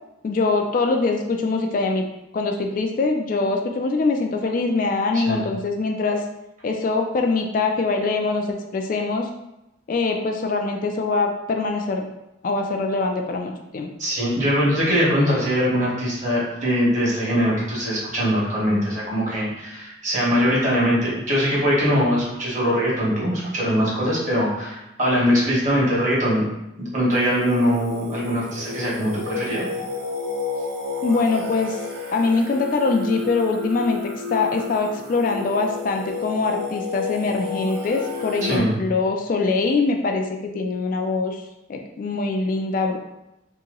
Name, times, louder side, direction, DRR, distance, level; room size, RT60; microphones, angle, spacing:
voice 1, 0.2-2.0 2.3-6.2 6.6-8.5 8.7-9.3 9.9-12.1 12.4-13.9 31.0-31.8 32.1-41.4 41.7-43.0, left 3 dB, 45° left, 3 dB, 0.3 m, -23 dB
voice 2, 14.0-26.4 26.8-29.7 38.4-38.7, equal, 40° right, -6 dB, 1.3 m, -22 dB
Singing, 27.1-38.6, left 4 dB, 55° right, 0.7 m, -32 dB
2.9 x 2.7 x 3.7 m, 0.91 s
head